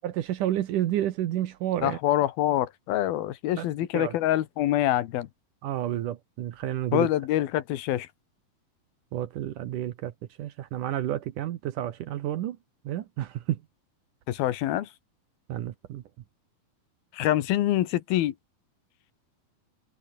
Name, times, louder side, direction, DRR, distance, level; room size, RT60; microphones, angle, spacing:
voice 1, 0.0-2.0 3.6-3.7 3.9-4.1 5.6-7.1 9.1-10.1 10.4-12.6 12.9-13.6 15.5-16.0, right 12 dB, 65° right, 2.4 m, -30 dB
voice 2, 1.8-5.3 6.9-8.1 14.3-14.9 17.1-18.3, left 13 dB, 75° left, 3.1 m, -25 dB
omnidirectional pair, 4.4 m